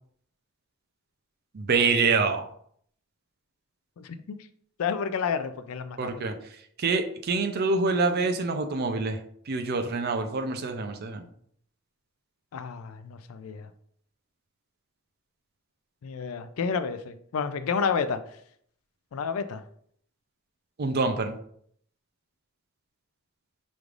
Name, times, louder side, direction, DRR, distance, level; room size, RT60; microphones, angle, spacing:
voice 1, 1.5-2.5 6.0-6.3 6.8-9.2 9.5-11.2 20.8-21.4, right 4 dB, 50° right, 6 dB, 0.5 m, -26 dB
voice 2, 4.0-4.4 4.8-6.2 12.5-13.7 16.0-18.2 19.1-19.6, left 6 dB, 75° left, 11 dB, 0.4 m, -30 dB
5.1 x 3.2 x 2.5 m, 0.65 s
head